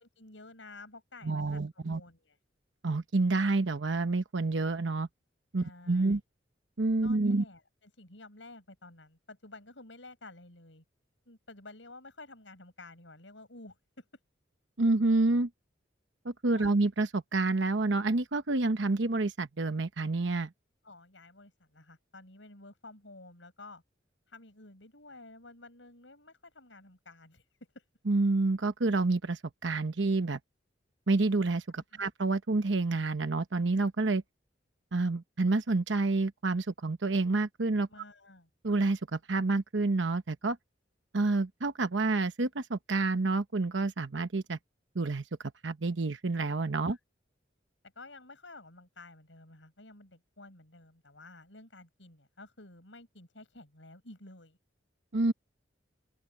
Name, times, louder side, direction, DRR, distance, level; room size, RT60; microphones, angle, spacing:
voice 1, 0.0-2.4 5.6-6.2 7.0-10.8 11.3-14.0 16.6-16.8 20.8-23.8 24.3-27.4 27.7-27.8 31.8-32.1 37.9-38.5 46.9-47.0 47.9-54.6, left 2 dB, 85° left, 6.5 m, -52 dB
voice 2, 1.2-2.0 2.8-5.1 5.5-6.2 6.8-7.4 14.8-15.5 16.2-20.5 28.1-30.4 31.1-34.2 34.9-37.9 38.6-40.6 41.1-44.6 44.9-45.2 45.6-47.0 55.1-55.3, right 3 dB, 75° right, 1.0 m, -28 dB
open air
head